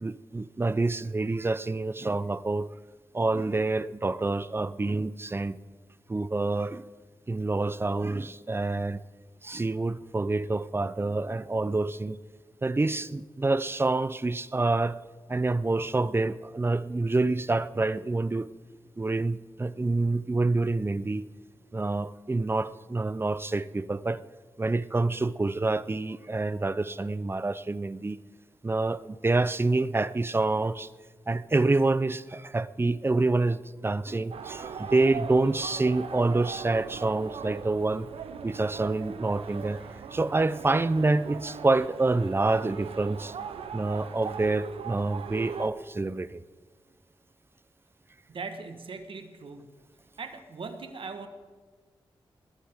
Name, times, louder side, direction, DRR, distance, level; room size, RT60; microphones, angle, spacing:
voice 1, 0.0-2.7 3.1-5.6 6.1-6.8 7.3-9.0 9.4-12.2 12.6-15.0 15.3-18.5 19.0-21.3 21.7-24.2 24.6-28.2 28.6-30.9 31.3-38.1 38.4-39.8 40.1-43.3 43.7-46.4, right 2 dB, 25° right, 0.5 m, -27 dB
sound 1, 34.3-45.7, right 6 dB, 85° right, 0.8 m, -39 dB
voice 2, 48.3-49.7 50.2-51.3, right 4 dB, 70° right, 1.4 m, -39 dB
20.0 x 12.5 x 3.7 m
cardioid pair, 55°, 9 cm